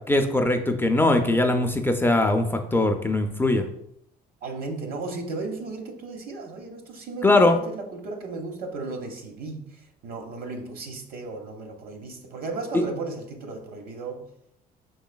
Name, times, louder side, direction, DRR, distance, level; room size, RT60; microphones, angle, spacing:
voice 1, 0.1-3.6 7.2-7.6, left 2 dB, 15° left, 5 dB, 0.4 m, -21 dB
voice 2, 4.4-14.3, right 3 dB, 60° right, 4 dB, 0.9 m, -35 dB
5.4 x 3.9 x 2.2 m, 0.75 s
cardioid pair, 110°, 17 cm